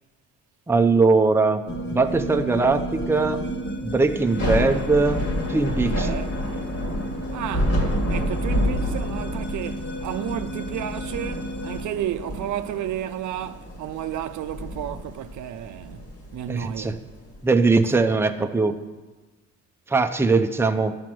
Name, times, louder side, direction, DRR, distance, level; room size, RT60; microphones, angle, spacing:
voice 1, 0.7-1.6 1.9-3.4 3.8-5.2 5.5-6.1 16.5-17.0 17.4-18.8 19.9-21.0, right 3 dB, 10° right, 0.6 m, -20 dB
sound 1, 1.7-11.8, equal, 40° left, 1.2 m, -33 dB
Thunder / Rain, 4.2-17.4, equal, 55° left, 2.3 m, -29 dB
voice 2, 5.9-6.3 7.3-7.8 8.1-16.1 16.3-17.0 17.8-17.9, right 11 dB, 70° right, 0.5 m, -32 dB
11.0 x 5.1 x 6.1 m
cardioid pair, 90°, 30 cm